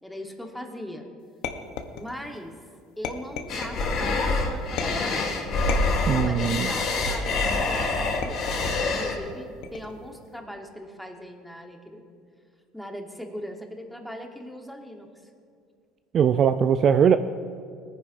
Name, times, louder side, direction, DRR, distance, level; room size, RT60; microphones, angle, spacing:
voice 1, 0.0-1.1 1.9-2.5 3.0-5.2 6.0-8.5 8.8-12.0 12.7-15.1, equal, ahead, 3 dB, 1.1 m, -39 dB
sound 1, 1.4-2.4 3.0-4.0 4.8-5.2 5.7-6.7 7.3-7.7 8.2-8.9 9.6-10.1, left 7 dB, 75° left, 0.8 m, -35 dB
sound 2, 3.5-9.1, left 3 dB, 50° left, 1.9 m, -26 dB
voice 2, 6.1-6.7 16.1-17.2, right 8 dB, 40° right, 10 dB, 0.3 m, -20 dB
19.0 x 9.7 x 2.6 m, 2.3 s
cardioid pair, 125°, 0 cm